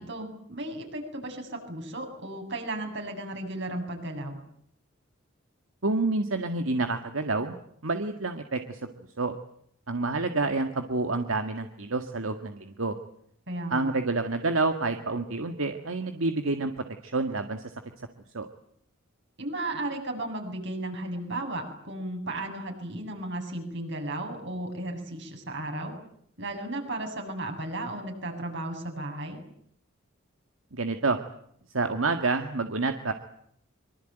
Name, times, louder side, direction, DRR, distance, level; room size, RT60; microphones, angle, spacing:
voice 1, 0.0-4.4 13.5-13.9 19.4-25.9 26.4-29.4, right 1 dB, 60° right, 3 dB, 8.0 m, -35 dB
voice 2, 5.8-7.6 7.8-9.4 9.9-13.0 13.7-17.7 18.3-18.5 30.7-31.2 31.7-33.1, right 3 dB, 85° right, 7 dB, 1.8 m, -28 dB
25.0 x 24.5 x 9.1 m, 0.69 s
head